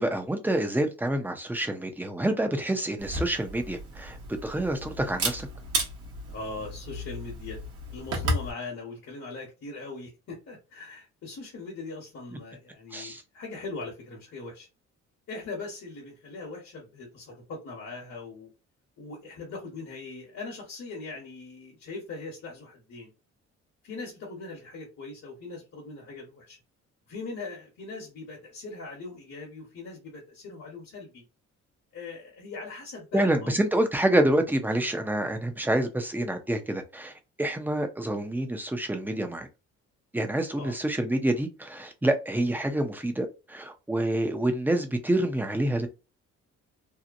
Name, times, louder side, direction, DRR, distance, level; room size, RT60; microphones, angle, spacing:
voice 1, 0.0-5.5 12.9-13.2 33.1-39.5 40.1-45.9, right 1 dB, 5° right, 0.5 m, -27 dB
Camera, 3.0-8.5, right 1 dB, 50° right, 1.0 m, -33 dB
voice 2, 6.3-7.6 7.9-14.7 15.3-18.5 19.0-23.1 23.8-26.6 27.1-31.2 31.9-33.6 40.5-40.8, left 3 dB, 55° left, 1.1 m, -40 dB
2.8 x 2.1 x 2.5 m
cardioid pair, 90°, 30 cm